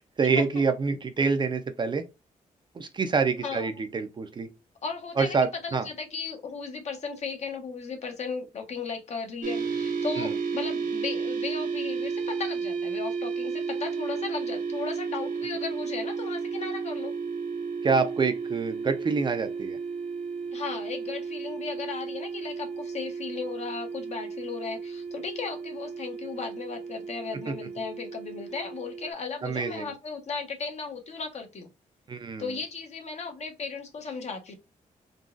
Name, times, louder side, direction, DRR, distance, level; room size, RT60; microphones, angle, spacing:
voice 1, 0.2-2.0 2.8-4.5 5.2-5.9 10.2-10.3 17.8-19.8 27.5-27.6 29.4-29.9 32.1-32.5, right 5 dB, 35° right, 0.5 m, -26 dB
voice 2, 4.8-5.4 5.6-17.2 20.5-31.7 32.4-34.5, left 5 dB, 55° left, 1.0 m, -36 dB
sound 1, 9.4-29.1, right 5 dB, 70° right, 0.7 m, -33 dB
3.8 x 2.3 x 2.3 m
wide cardioid pair, 130°, 14 cm